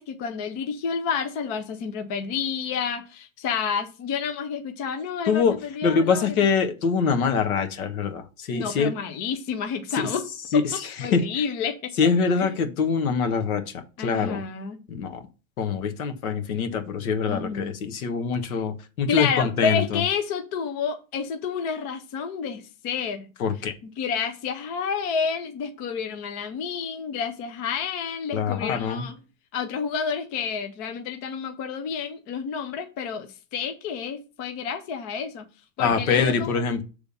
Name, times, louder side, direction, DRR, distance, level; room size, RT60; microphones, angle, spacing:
voice 1, 0.0-6.2 8.5-10.2 11.0-11.9 12.4-12.5 14.0-14.8 17.3-17.7 19.1-23.3 23.8-29.2 29.5-35.5 35.8-36.6, left 6 dB, 20° left, 0.5 m, -29 dB
voice 2, 5.3-8.9 9.9-10.1 10.5-11.4 12.0-14.4 14.9-15.3 15.6-20.0 23.4-23.7 28.3-29.0 35.8-36.8, left 5 dB, 85° left, 1.5 m, -24 dB
7.0 x 3.4 x 5.4 m
supercardioid pair, 170°, 41 cm